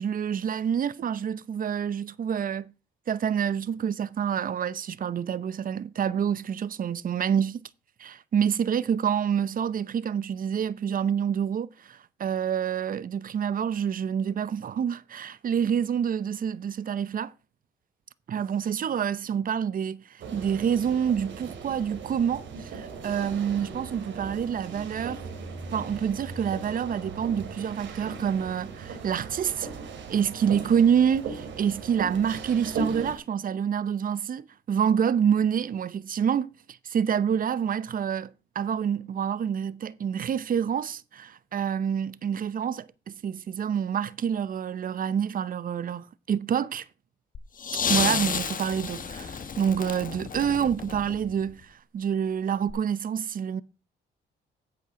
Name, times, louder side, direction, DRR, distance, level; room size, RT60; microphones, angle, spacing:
voice 1, 0.0-2.7 3.1-7.6 8.0-17.3 18.3-25.2 25.7-29.7 30.1-46.9 47.9-53.6, right 8 dB, 45° right, 0.7 m, -27 dB
sound 1, 20.2-33.2, right 4 dB, 70° right, 2.5 m, -38 dB
sound 2, 47.3-51.5 52.7-52.8, left 6 dB, 45° left, 1.4 m, -31 dB
10.0 x 8.3 x 3.7 m
cardioid pair, 90°, 20 cm